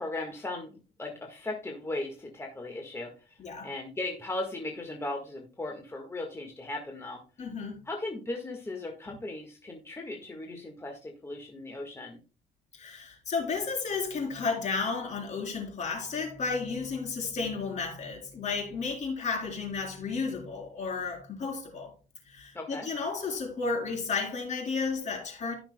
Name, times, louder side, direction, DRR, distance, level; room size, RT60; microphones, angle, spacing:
voice 1, 0.0-7.2 7.8-12.2 22.5-22.9, left 2 dB, 15° left, 1.5 m, -37 dB
voice 2, 7.4-7.7 12.7-21.9 22.3-25.5, left 4 dB, 45° left, 4.0 m, -33 dB
16.0 x 5.9 x 2.2 m
cardioid pair, 110°, 17 cm